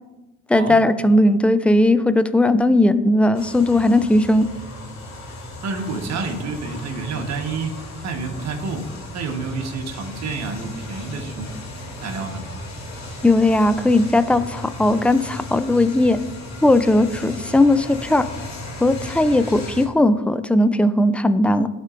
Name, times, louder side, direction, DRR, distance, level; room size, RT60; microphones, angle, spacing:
voice 1, 0.5-4.5 13.2-16.2 16.6-18.3 18.8-21.7, left 1 dB, 5° left, 12 dB, 0.3 m, -17 dB
sound 1, 3.3-19.9, left 1 dB, 65° left, 2.4 m, -36 dB
voice 2, 5.6-7.7 8.0-8.9 9.1-11.5 11.8-12.4, right 4 dB, 60° right, 3 dB, 1.2 m, -29 dB
12.0 x 4.4 x 2.5 m, 1.1 s
supercardioid pair, 70°, 30 cm